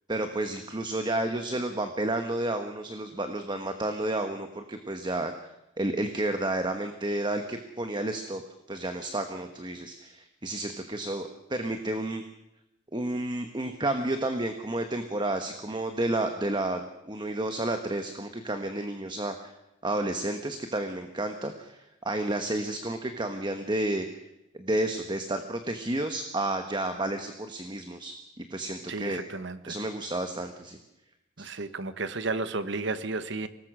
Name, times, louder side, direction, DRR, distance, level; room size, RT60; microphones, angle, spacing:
voice 1, 0.1-5.5 5.8-8.4 8.7-12.2 12.9-19.5 19.8-24.1 24.5-29.2 29.7-30.8 31.4-31.5, right 1 dB, 25° right, 7 dB, 1.3 m, -31 dB
voice 2, 28.9-29.7 31.4-33.5, right 3 dB, 65° right, 12 dB, 1.3 m, -33 dB
24.5 x 19.0 x 6.2 m, 0.91 s
head